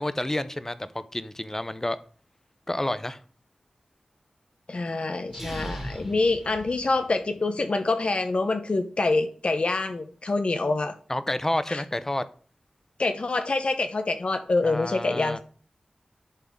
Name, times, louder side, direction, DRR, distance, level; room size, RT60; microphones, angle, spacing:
voice 1, 0.0-2.0 2.7-3.2 11.1-12.2 14.6-15.4, left 1 dB, 20° left, 0.6 m, -29 dB
voice 2, 4.7-10.9 11.7-11.8 13.0-15.4, left 3 dB, 60° left, 0.8 m, -26 dB
sound 1, 5.2-7.4, right 1 dB, 10° right, 2.1 m, -39 dB
11.0 x 3.7 x 3.6 m
cardioid pair, 55°, 2 cm